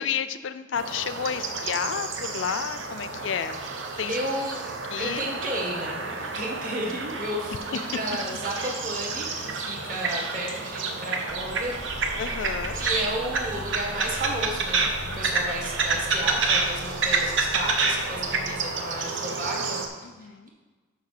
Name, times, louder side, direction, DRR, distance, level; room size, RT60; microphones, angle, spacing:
voice 1, 0.0-3.6 4.0-4.2 4.9-5.2 12.2-12.8 20.0-20.5, left 7 dB, 80° left, 13 dB, 0.4 m, -31 dB
sound 1, 0.7-19.9, right 4 dB, 85° right, 1.0 m, -29 dB
voice 2, 4.1-4.7 5.0-11.7 12.7-20.1, right 1 dB, 45° right, -1 dB, 1.7 m, -33 dB
sound 2, 11.3-19.1, left 1 dB, 10° left, 0.5 m, -41 dB
6.6 x 5.1 x 6.6 m, 1.3 s
head